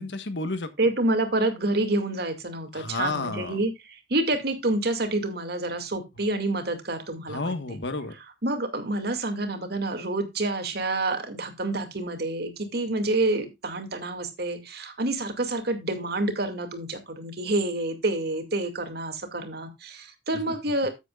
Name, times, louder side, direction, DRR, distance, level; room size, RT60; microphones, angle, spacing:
voice 1, 0.0-0.7 2.7-3.6 7.3-8.1, left 3 dB, 75° left, 1.5 m, -31 dB
voice 2, 0.8-7.5 8.4-20.9, right 2 dB, 65° right, 2.3 m, -28 dB
13.5 x 8.2 x 2.4 m
head